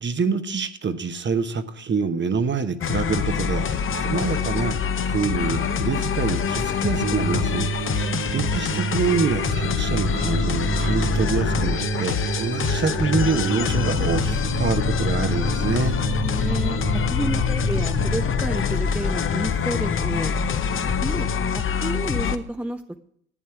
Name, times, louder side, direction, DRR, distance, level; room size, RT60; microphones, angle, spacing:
voice 1, 0.0-4.7 5.0-15.9, right 5 dB, 30° right, 10 dB, 1.1 m, -26 dB
sound 1, 2.8-22.4, left 7 dB, 35° left, 0.8 m, -25 dB
sound 2, 7.0-20.1, right 7 dB, 60° right, 1.3 m, -30 dB
voice 2, 16.2-16.8 17.1-20.3 21.0-21.3 21.5-23.0, right 1 dB, 5° right, 7 dB, 0.6 m, -30 dB
11.0 x 8.4 x 4.7 m, 0.66 s
supercardioid pair, 80°, 37 cm